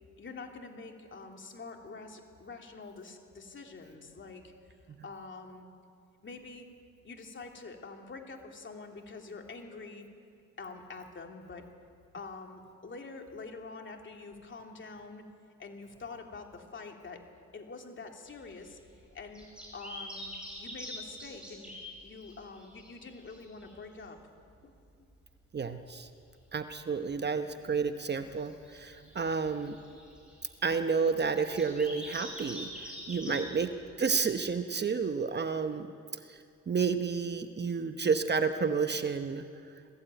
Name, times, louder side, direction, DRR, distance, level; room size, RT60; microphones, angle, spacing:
voice 1, 0.2-5.7 6.2-6.7 7.0-10.0 10.6-11.7 12.1-15.2 15.6-17.2 17.5-18.8 19.1-19.5 19.7-21.7 22.0-24.2 24.6-24.7 29.9-30.0 33.3-33.5, left 4 dB, 40° left, 2 dB, 2.9 m, -46 dB
sound 1, 18.3-24.2 24.5-24.6 24.9-25.0 25.2-25.4 25.9-26.8 27.1-27.2 27.9-34.6, equal, 5° right, 7.6 m, -46 dB
voice 2, 25.5-26.1 26.5-29.8 30.6-32.7 33.1-33.7 34.0-35.9 36.3-39.4, right 5 dB, 35° right, 8 dB, 1.0 m, -30 dB
20.0 x 15.0 x 9.1 m, 2.3 s
cardioid pair, 90°, 30 cm